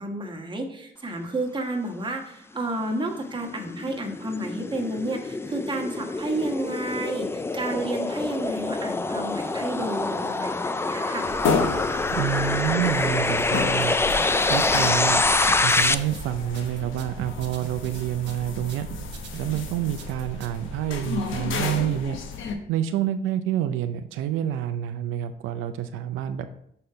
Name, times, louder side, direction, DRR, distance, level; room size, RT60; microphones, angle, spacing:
voice 1, 0.0-11.3, right 2 dB, 25° right, 2 dB, 1.3 m, -31 dB
sound 1, 2.7-15.9, left 3 dB, 10° left, 0.3 m, -26 dB
sound 2, 11.3-22.5, left 4 dB, 80° left, 0.9 m, -32 dB
voice 2, 12.1-14.0 14.5-15.2 15.6-18.9 19.4-22.2 22.7-26.5, right 11 dB, 90° right, 8 dB, 0.5 m, -28 dB
sound 3, 14.1-20.8, right 7 dB, 65° right, 1.0 m, -41 dB
6.6 x 4.2 x 4.6 m, 0.73 s
cardioid pair, 90°, 20 cm